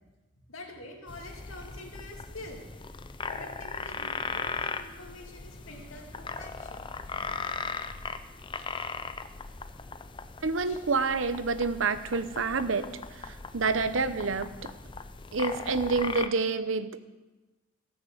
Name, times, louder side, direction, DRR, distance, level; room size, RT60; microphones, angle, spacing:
voice 1, 0.5-2.6 3.3-8.7 10.6-10.8, left 2 dB, 85° left, 1 dB, 2.4 m, -47 dB
sound 1, 1.1-16.3, left 4 dB, 25° left, 0.5 m, -38 dB
voice 2, 10.4-14.7 15.3-17.0, right 4 dB, 75° right, 12 dB, 0.8 m, -28 dB
15.0 x 6.7 x 7.8 m, 1.2 s
head